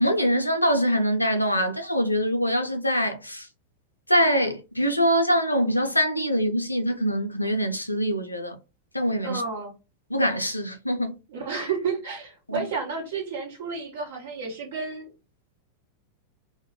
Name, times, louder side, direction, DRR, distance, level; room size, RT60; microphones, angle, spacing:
voice 1, 0.0-3.5 4.1-8.6 8.9-9.4 10.1-11.2 12.5-12.6, equal, 85° left, 0.4 m, -24 dB
voice 2, 9.2-9.7 11.3-15.1, right 5 dB, 60° right, 1.0 m, -31 dB
2.2 x 2.1 x 2.8 m
figure-of-eight pair, 90°, 0 cm